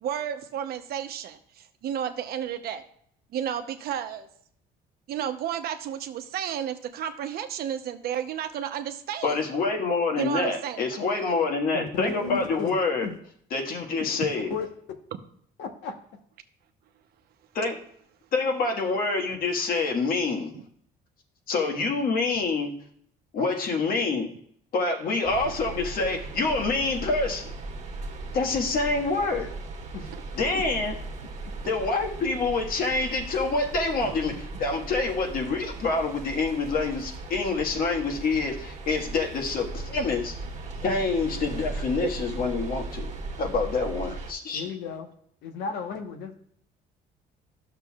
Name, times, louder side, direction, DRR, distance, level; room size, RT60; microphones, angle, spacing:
voice 1, 0.0-2.9 3.3-4.3 5.1-9.4 10.2-10.8 20.5-20.6 28.1-28.2 30.1-30.2 31.5-31.7 42.0-42.1, right 9 dB, 65° right, 8 dB, 0.8 m, -32 dB
voice 2, 9.2-13.1 13.5-14.5 17.6-17.8 18.3-20.5 21.5-22.8 23.3-24.3 24.7-27.5 28.3-29.5 30.4-30.9 31.7-40.3 40.8-43.1 43.4-44.6, left 3 dB, 60° left, 2 dB, 1.6 m, -26 dB
voice 3, 11.7-12.7 13.0-13.2 14.0-14.1 14.5-14.7 15.6-16.0 29.9-30.1 44.5-45.1 45.4-46.3, left 5 dB, 85° left, 5 dB, 1.1 m, -33 dB
sound 1, 25.2-44.3, right 3 dB, 45° right, 1.5 m, -37 dB
12.0 x 6.7 x 2.4 m, 0.64 s
cardioid pair, 110°, 17 cm